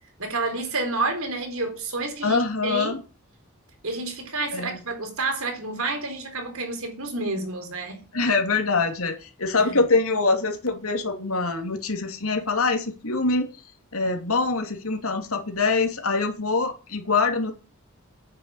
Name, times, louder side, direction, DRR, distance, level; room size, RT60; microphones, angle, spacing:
voice 1, 0.2-3.0 3.8-8.1, right 3 dB, 70° right, 4.0 m, -29 dB
voice 2, 2.2-3.0 4.5-4.8 8.1-13.5 13.9-17.5, left 3 dB, 75° left, 2.8 m, -24 dB
9.7 x 7.1 x 8.2 m
head